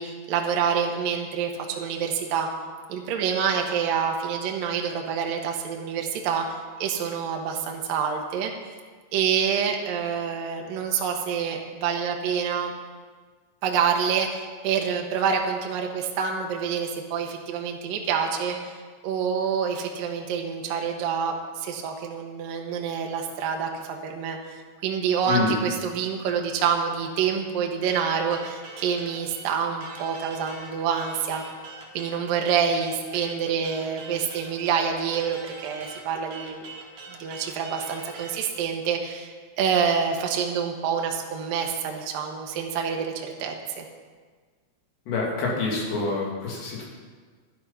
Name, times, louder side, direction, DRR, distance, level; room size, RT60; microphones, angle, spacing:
voice 1, 0.0-2.5 2.9-8.5 9.1-12.7 13.6-18.7 19.0-31.4 31.9-36.6 37.1-43.8, right 7 dB, 75° right, 2 dB, 2.0 m, -27 dB
sound 1, 27.8-38.4, right 3 dB, 45° right, 2.9 m, -43 dB
voice 2, 45.1-46.8, left 4 dB, 60° left, -3 dB, 4.7 m, -27 dB
13.0 x 11.5 x 5.7 m, 1.5 s
omnidirectional pair, 5.9 m